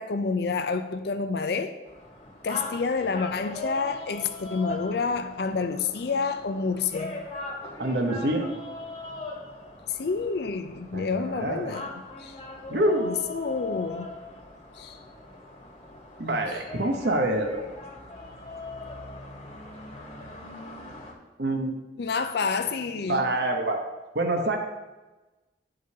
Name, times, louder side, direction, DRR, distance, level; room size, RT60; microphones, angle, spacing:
voice 1, 0.0-1.7 2.4-7.2 9.9-11.9 12.2-12.4 13.0-14.1 14.8-15.0 22.0-23.3, left 4 dB, 60° left, 8 dB, 0.5 m, -28 dB
sound 1, 1.9-21.1, left 2 dB, 35° left, 1.3 m, -40 dB
voice 2, 7.8-8.6 10.9-11.7 12.7-13.2 16.2-17.6 21.4-21.8 23.1-23.8 24.1-24.6, right 1 dB, 65° right, 3 dB, 1.0 m, -26 dB
12.0 x 4.9 x 2.8 m, 1.1 s
head